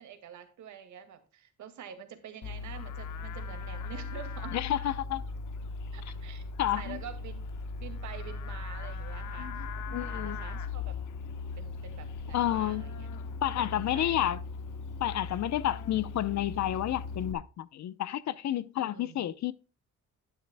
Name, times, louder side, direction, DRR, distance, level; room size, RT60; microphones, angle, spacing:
voice 1, 0.0-4.6 5.9-6.4 6.7-7.4 7.8-11.0 11.6-13.1 13.6-14.3 18.8-19.3, right 8 dB, 75° right, 2.1 m, -47 dB
Livestock farm animals working animals, 2.4-17.3, left 4 dB, 85° left, 1.2 m, -38 dB
voice 2, 4.5-5.2 6.6-7.0 9.4-10.4 12.3-12.8 13.4-14.4 15.0-19.5, left 12 dB, 65° left, 0.8 m, -30 dB
11.0 x 9.4 x 2.2 m
cardioid pair, 90°, 30 cm